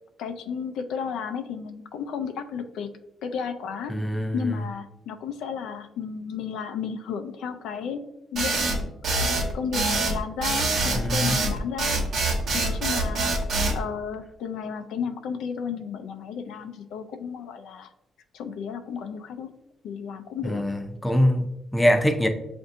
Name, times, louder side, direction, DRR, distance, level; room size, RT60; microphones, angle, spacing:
voice 1, 0.2-2.9 3.2-4.0 4.3-8.0 8.3-8.9 9.5-13.3 13.7-17.9 18.3-19.5 19.8-20.6, left 6 dB, 85° left, 0.4 m, -33 dB
voice 2, 3.9-4.5 10.9-11.4 20.4-22.3, equal, 5° left, 0.5 m, -23 dB
sound 1, 8.4-13.8, right 2 dB, 70° right, 1.1 m, -25 dB
6.9 x 2.6 x 2.6 m
cardioid pair, 90°, 0 cm